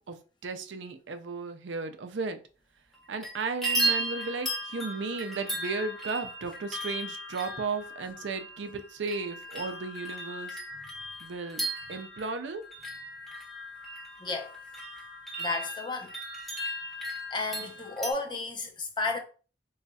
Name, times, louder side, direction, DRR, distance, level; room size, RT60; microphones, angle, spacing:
voice 1, 0.1-2.4 3.1-10.6 11.2-11.6 11.9-12.6, right 4 dB, 85° right, 0.5 m, -35 dB
sound 1, 2.9-3.3 3.6-18.1, right 1 dB, ahead, 0.9 m, -36 dB
voice 2, 14.2-14.5 15.4-16.1 17.3-19.2, left 3 dB, 25° left, 0.7 m, -32 dB
4.0 x 3.1 x 2.3 m
head